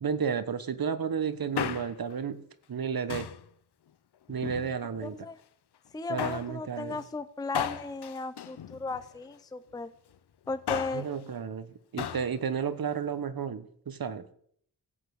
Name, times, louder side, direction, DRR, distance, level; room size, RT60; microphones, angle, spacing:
voice 1, 0.0-2.4 2.7-3.3 4.3-5.2 6.1-7.0 10.9-14.2, right 6 dB, 65° right, 12 dB, 1.1 m, -32 dB
Male speech man speaking, 1.3-2.1 3.1-3.5 4.3-5.1 6.2-6.6 7.5-9.2 10.5-11.1 12.0-12.3 12.6-12.7, left 9 dB, 85° left, 0.7 m, -35 dB
voice 2, 5.0-5.4 5.9-9.9 10.5-11.1, left 3 dB, 10° left, 13 dB, 0.6 m, -36 dB
16.0 x 5.5 x 7.9 m, 0.65 s
wide cardioid pair, 105°, 39 cm